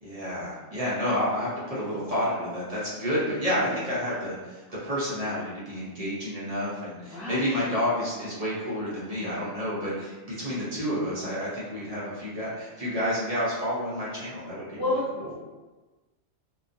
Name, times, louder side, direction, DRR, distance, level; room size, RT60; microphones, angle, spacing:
voice 1, 0.0-14.8, equal, 40° right, -8 dB, 0.6 m, -30 dB
voice 2, 7.0-7.8 14.7-15.4, left 2 dB, 15° right, -10 dB, 0.8 m, -31 dB
2.3 x 2.2 x 2.5 m, 1.2 s
omnidirectional pair, 1.2 m